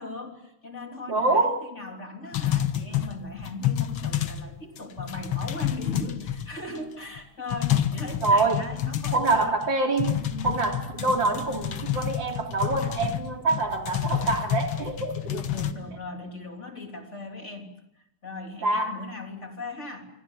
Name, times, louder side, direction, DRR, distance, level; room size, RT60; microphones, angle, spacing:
voice 1, 0.0-9.6 10.1-10.6 15.2-17.7 18.0-20.1, left 2 dB, 35° left, 3 dB, 3.6 m, -38 dB
voice 2, 1.1-1.6 8.2-8.7 9.1-10.2 10.4-15.4 18.6-19.0, right 3 dB, 60° right, 3 dB, 3.5 m, -25 dB
sound 1, 2.3-4.5 4.8-6.8 7.2-7.3 7.5-9.7 10.0-15.7, left 11 dB, 75° left, 2.1 m, -29 dB
28.0 x 24.5 x 7.2 m, 0.81 s
omnidirectional pair, 2.3 m